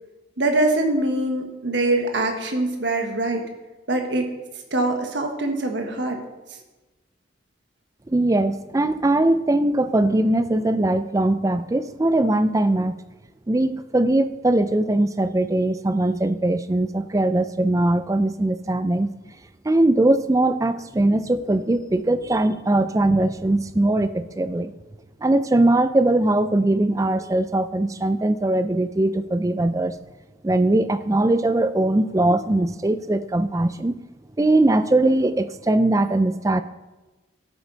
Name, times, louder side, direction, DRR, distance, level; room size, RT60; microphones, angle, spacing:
voice 1, 0.4-3.4 3.9-4.3 4.7-6.2, right 2 dB, 70° right, 3 dB, 1.4 m, -23 dB
voice 2, 8.1-13.0 13.5-19.1 19.6-24.7 25.2-30.0 30.4-34.0 34.4-36.6, right 2 dB, 15° right, 12 dB, 0.4 m, -20 dB
12.5 x 7.9 x 3.9 m, 1.1 s
head